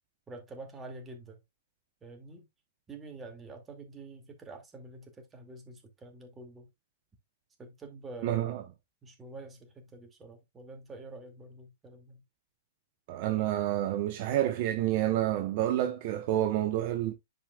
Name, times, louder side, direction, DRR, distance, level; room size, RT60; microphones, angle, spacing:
voice 1, 0.3-1.4 2.0-2.5 2.9-6.7 7.6-8.5 9.0-12.2, right 2 dB, 15° right, 2.3 m, -47 dB
voice 2, 8.2-8.6 13.1-17.1, right 13 dB, 50° right, 0.8 m, -29 dB
10.0 x 5.1 x 2.3 m
figure-of-eight pair, 105°, 0 cm